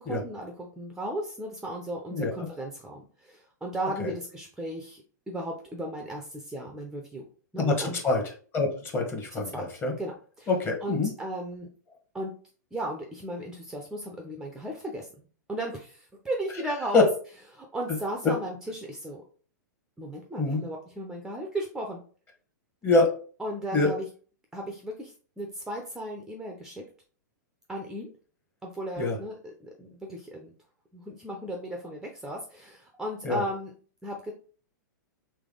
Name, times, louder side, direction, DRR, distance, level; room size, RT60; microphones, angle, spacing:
voice 1, 0.0-7.2 7.5-8.0 9.3-9.7 10.0-10.5 10.8-11.7 12.1-12.3 12.7-17.1 17.5-19.2 20.0-22.0 23.4-24.1 24.5-26.8 27.7-28.1 28.6-30.5 30.9-33.7 34.0-34.3, right 1 dB, 5° right, 2 dB, 0.6 m, -36 dB
voice 2, 7.6-8.2 8.5-9.9 10.5-11.1 16.9-17.1 18.2-18.3 20.4-20.6 22.8-23.1 23.7-23.9 29.0-29.2 33.2-33.4, left 3 dB, 20° left, 1 dB, 1.2 m, -24 dB
3.4 x 3.3 x 3.7 m, 0.42 s
hypercardioid pair, 120°, 10 cm